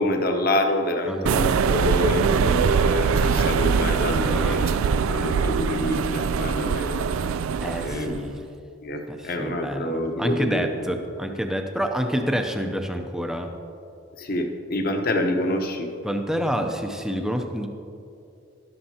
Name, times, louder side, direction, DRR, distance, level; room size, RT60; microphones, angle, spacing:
voice 1, 0.0-4.7 5.1-7.1 7.8-8.2 8.8-10.6 14.2-15.9, left 1 dB, 45° left, 4 dB, 0.9 m, -26 dB
sound 1, 1.3-8.2, right 6 dB, 85° right, 0.3 m, -22 dB
voice 2, 7.6-8.4 9.1-13.5 16.0-17.7, equal, 5° right, 4 dB, 0.6 m, -28 dB
13.0 x 12.0 x 2.9 m, 2.7 s
head